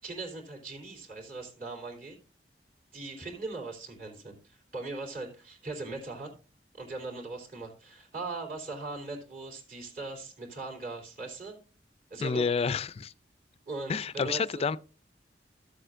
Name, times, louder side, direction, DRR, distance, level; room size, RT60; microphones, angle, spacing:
voice 1, 0.0-2.2 2.9-6.4 6.7-11.6 12.1-12.6 13.6-14.7, right 3 dB, 55° right, 3.3 m, -40 dB
voice 2, 12.2-13.1 13.9-14.8, left 5 dB, 35° left, 0.4 m, -29 dB
14.0 x 7.8 x 2.6 m
head